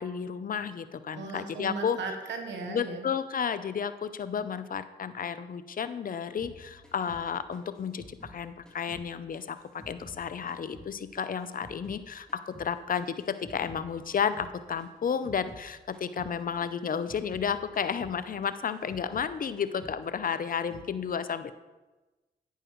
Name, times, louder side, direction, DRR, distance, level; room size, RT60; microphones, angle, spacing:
voice 1, 0.0-2.0 2.7-21.6, left 7 dB, 50° left, 13 dB, 0.6 m, -32 dB
voice 2, 1.1-3.1, right 4 dB, 85° right, 4 dB, 1.1 m, -37 dB
sound 1, 6.4-9.1 9.3-12.0 12.3-15.7 15.9-16.3 16.6-19.3 19.6-20.0 20.2-20.9, left 1 dB, 5° left, 3.1 m, -51 dB
11.0 x 9.0 x 3.1 m, 1.2 s
supercardioid pair, 45°, 18 cm